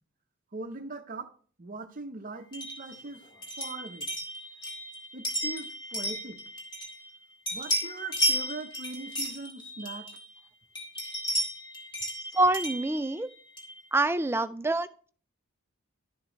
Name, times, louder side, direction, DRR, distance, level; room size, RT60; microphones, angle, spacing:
voice 1, 0.5-3.3 3.6-4.1 5.1-6.4 7.5-10.1, right 3 dB, 40° right, 0.7 m, -41 dB
sound 1, 2.5-7.2 7.5-10.4 10.8-13.8, equal, 25° left, 2.1 m, -34 dB
voice 2, 12.3-13.3 13.9-15.1, right 2 dB, 10° right, 0.3 m, -26 dB
11.0 x 7.4 x 3.1 m
head